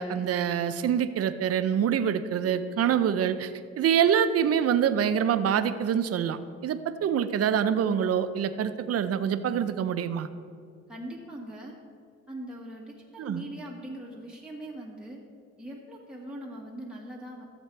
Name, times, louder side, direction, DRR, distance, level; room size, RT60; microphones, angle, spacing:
voice 1, 0.0-3.5 3.8-10.3 13.2-13.4, right 8 dB, 55° right, 11 dB, 0.6 m, -25 dB
voice 2, 10.9-11.7 12.3-15.2 15.6-17.4, right 1 dB, 5° right, -4 dB, 1.6 m, -41 dB
13.5 x 7.3 x 3.3 m, 2.1 s
cardioid pair, 90°, 30 cm